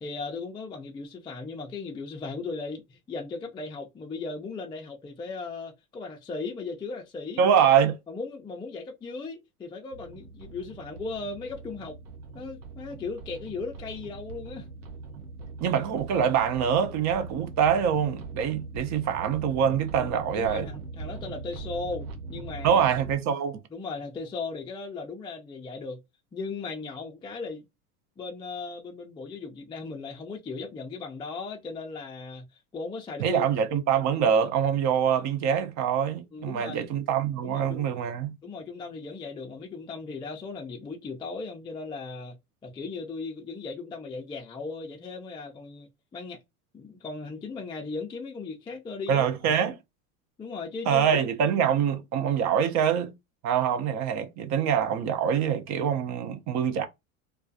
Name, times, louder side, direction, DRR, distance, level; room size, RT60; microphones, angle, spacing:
voice 1, 0.0-7.4 8.1-12.0 12.3-14.7 20.0-22.8 23.7-26.0 26.3-27.6 28.2-32.4 32.7-33.5 36.3-36.9 37.4-37.9 38.4-42.4 42.6-46.4 46.7-49.8 50.4-51.2, left 4 dB, 10° left, 0.3 m, -37 dB
voice 2, 7.4-8.0 15.6-20.7 22.6-23.6 33.2-38.4 49.1-49.7 50.9-53.1 53.4-56.9, right 8 dB, 40° right, 0.5 m, -25 dB
sound 1, 9.9-23.1, right 4 dB, 85° right, 0.7 m, -41 dB
2.3 x 2.3 x 2.5 m
hypercardioid pair, 90°, 44 cm